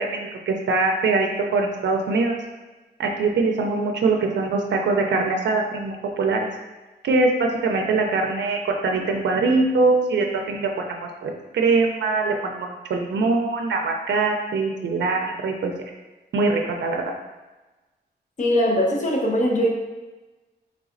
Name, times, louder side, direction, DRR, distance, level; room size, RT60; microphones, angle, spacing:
voice 1, 0.0-2.3 3.0-6.5 7.0-15.7 16.3-17.1, right 3 dB, 85° right, 2 dB, 0.4 m, -23 dB
voice 2, 18.4-19.7, equal, 45° left, -1 dB, 0.8 m, -21 dB
4.0 x 3.3 x 2.5 m, 1.1 s
wide cardioid pair, 130°, 18 cm